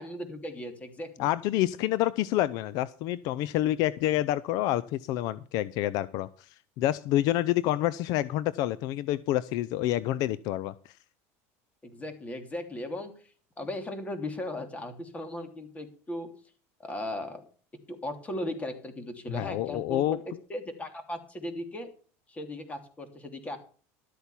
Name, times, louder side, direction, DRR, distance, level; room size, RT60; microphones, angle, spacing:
voice 1, 0.0-1.3 11.8-13.1 13.6-16.3 16.8-17.4 18.0-20.2 20.5-21.9 22.3-23.6, left 1 dB, 20° left, 7 dB, 3.0 m, -37 dB
voice 2, 1.2-10.9 19.3-20.2, left 14 dB, 65° left, 19 dB, 0.6 m, -28 dB
13.0 x 8.2 x 5.7 m, 0.40 s
supercardioid pair, 115°, 7 cm